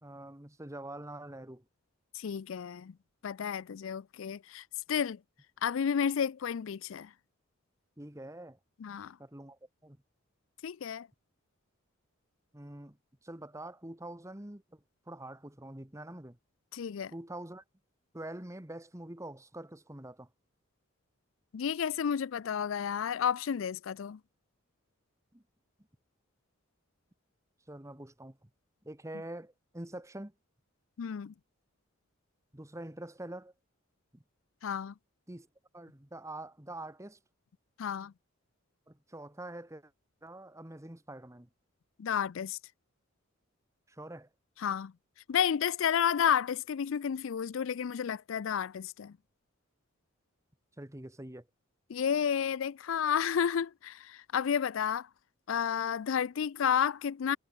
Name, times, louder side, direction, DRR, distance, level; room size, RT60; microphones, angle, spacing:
voice 1, 0.0-1.6 8.0-8.6 9.2-10.0 12.5-13.0 13.2-14.8 15.1-16.4 17.1-17.6 18.1-20.3 25.3-25.4 27.7-28.5 28.8-30.3 32.5-33.5 34.1-34.2 35.3-35.5 35.7-37.2 38.9-39.9 40.2-41.5 43.9-44.3 50.8-51.5, right 1 dB, 15° right, 1.4 m, -45 dB
voice 2, 2.2-2.9 3.2-5.2 5.6-7.1 8.8-9.1 10.6-11.1 16.7-17.1 21.5-24.2 31.0-31.3 34.6-34.9 37.8-38.1 42.0-42.6 44.6-44.9 45.3-49.1 51.9-55.1 55.5-57.4, left 8 dB, 70° left, 0.4 m, -31 dB
head